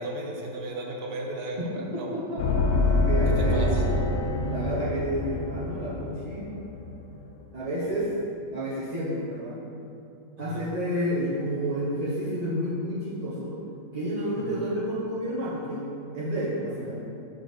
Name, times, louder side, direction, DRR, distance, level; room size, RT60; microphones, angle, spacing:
voice 1, 0.0-2.1 3.4-3.8 10.4-10.6 14.3-14.4, right 2 dB, 70° right, -1 dB, 1.6 m, -35 dB
voice 2, 1.9-2.4 3.0-4.0 4.4-6.5 7.5-8.1 8.5-9.6 10.4-13.5 13.9-17.0, equal, 30° right, -9 dB, 0.9 m, -30 dB
sound 1, 2.4-7.1, left 2 dB, 65° left, 1.1 m, -26 dB
6.6 x 4.4 x 6.7 m, 2.7 s
omnidirectional pair, 1.8 m